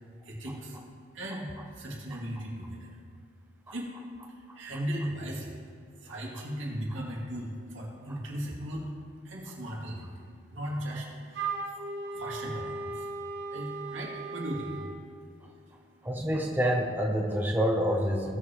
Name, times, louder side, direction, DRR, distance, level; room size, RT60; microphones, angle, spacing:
voice 1, 0.2-0.8 1.1-3.0 3.7-3.9 4.3-5.6 6.0-8.9 9.2-10.2 10.5-11.8 12.1-16.0, equal, 90° right, -3 dB, 2.5 m, -38 dB
Wind instrument woodwind instrument, 11.3-15.0, right 3 dB, 60° right, 1.3 m, -37 dB
voice 2, 16.0-18.4, equal, 10° right, 0 dB, 0.8 m, -27 dB
18.5 x 6.9 x 3.0 m, 2.3 s
head